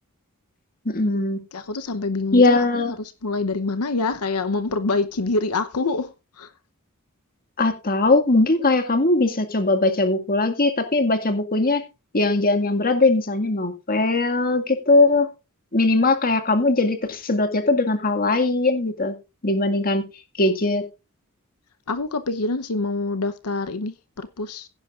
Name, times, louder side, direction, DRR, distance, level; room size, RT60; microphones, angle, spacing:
voice 1, 0.9-1.4 2.3-3.0 7.6-11.8 12.1-15.3 15.7-19.1 19.4-20.0 20.4-20.8, left 2 dB, 40° left, 2.0 m, -20 dB
voice 2, 1.5-6.5 21.9-24.7, left 3 dB, 85° left, 0.8 m, -26 dB
16.5 x 9.9 x 2.5 m
head